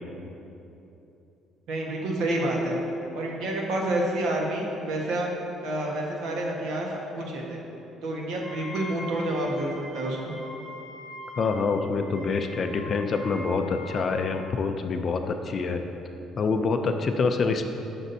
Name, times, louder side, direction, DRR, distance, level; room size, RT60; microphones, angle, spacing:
voice 1, 1.7-2.8 3.1-5.3 5.6-7.6 8.0-10.3, right 1 dB, 70° right, -1 dB, 1.3 m, -28 dB
Wind instrument woodwind instrument, 8.4-14.3, left 1 dB, 20° right, 1.4 m, -42 dB
voice 2, 11.4-15.8 16.4-17.6, left 4 dB, 30° left, 6 dB, 0.4 m, -26 dB
12.0 x 6.1 x 2.7 m, 2.9 s
cardioid pair, 170°, 0 cm